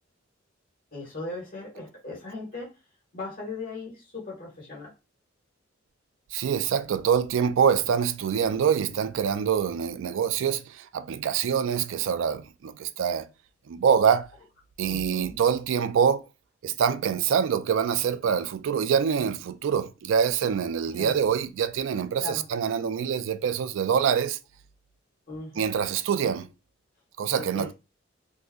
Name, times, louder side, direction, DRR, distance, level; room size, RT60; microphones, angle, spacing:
voice 1, 0.9-2.7 3.1-4.9 14.8-15.4 20.8-21.2 22.2-22.4 25.3-25.7 27.4-27.7, left 3 dB, 45° left, 1.4 m, -38 dB
voice 2, 6.3-13.3 13.7-14.3 14.8-16.2 16.6-24.4 25.6-26.5 27.2-27.7, right 7 dB, 80° right, 0.3 m, -25 dB
3.6 x 2.7 x 2.3 m
head